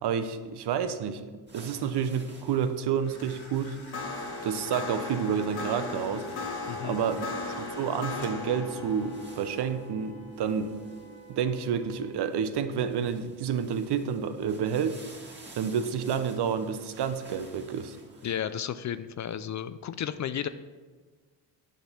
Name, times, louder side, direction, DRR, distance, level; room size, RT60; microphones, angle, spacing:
voice 1, 0.0-3.9 4.4-6.5 6.8-7.2 7.6-10.8 11.3-15.0 15.6-18.0, right 7 dB, 60° right, 10 dB, 0.8 m, -29 dB
sound 1, 1.5-18.4, right 2 dB, 25° right, 1.9 m, -54 dB
sound 2, 3.0-12.4, left 3 dB, 55° left, 1.7 m, -38 dB
voice 2, 6.7-7.0 18.2-20.5, left 9 dB, 40° left, 13 dB, 0.4 m, -33 dB
Wind instrument woodwind instrument, 7.8-12.3, right 7 dB, 75° right, 1.8 m, -54 dB
8.5 x 4.0 x 6.8 m, 1.4 s
supercardioid pair, 70°, 46 cm